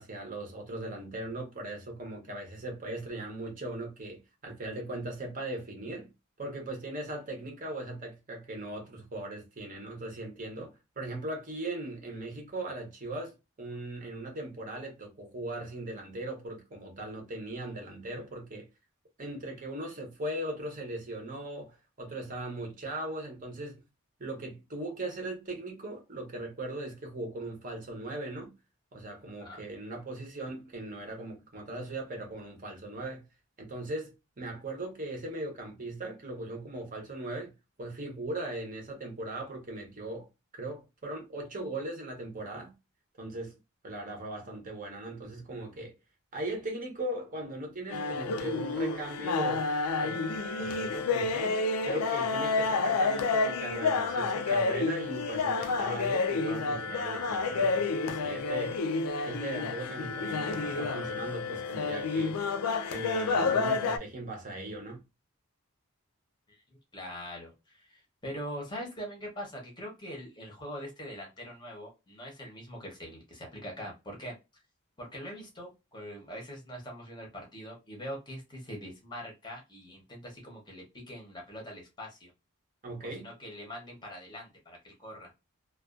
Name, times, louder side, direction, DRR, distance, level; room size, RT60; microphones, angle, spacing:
voice 1, 0.0-6.1 6.4-18.7 19.2-23.8 24.2-28.5 28.9-33.2 33.6-37.5 37.8-40.3 40.5-42.7 43.2-43.6 43.8-45.9 46.3-49.7 50.0-50.3 50.6-58.8 59.2-62.4 62.9-65.0 82.8-83.3, right 1 dB, 35° right, 0.7 m, -39 dB
sound 1, 47.9-64.0, left 4 dB, 90° left, 0.4 m, -30 dB
voice 2, 66.9-74.3 75.0-82.3 83.0-85.3, equal, 20° left, 0.7 m, -43 dB
2.3 x 2.2 x 2.3 m
head